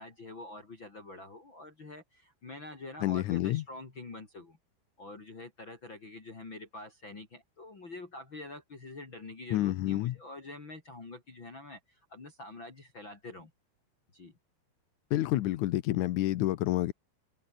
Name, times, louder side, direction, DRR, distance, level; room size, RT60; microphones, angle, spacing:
voice 1, 0.0-4.6 5.0-13.5 14.1-14.4, left 2 dB, 30° left, 3.7 m, -46 dB
voice 2, 3.0-3.6 9.5-10.2 15.1-16.9, left 15 dB, 85° left, 1.7 m, -28 dB
omnidirectional pair, 4.7 m